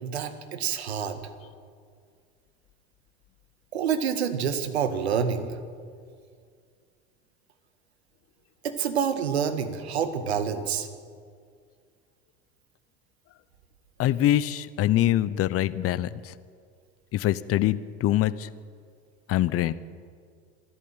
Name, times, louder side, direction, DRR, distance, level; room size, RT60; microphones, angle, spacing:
voice 1, 0.0-1.2 3.7-5.5 8.6-10.9, right 7 dB, 90° right, 9 dB, 1.8 m, -27 dB
voice 2, 14.0-16.3 17.1-18.5 19.3-19.7, left 13 dB, 45° left, 16 dB, 1.0 m, -24 dB
26.5 x 12.0 x 9.0 m, 2.1 s
hypercardioid pair, 85°, 31 cm